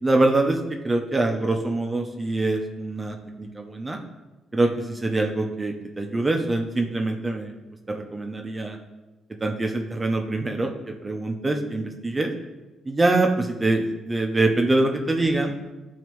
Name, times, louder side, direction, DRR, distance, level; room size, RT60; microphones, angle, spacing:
voice 1, 0.0-4.0 4.5-7.5 7.9-8.8 9.4-12.3 12.9-15.5, right 2 dB, 20° right, 3 dB, 0.9 m, -24 dB
11.5 x 4.0 x 3.1 m, 1.1 s
cardioid pair, 90°, 0 cm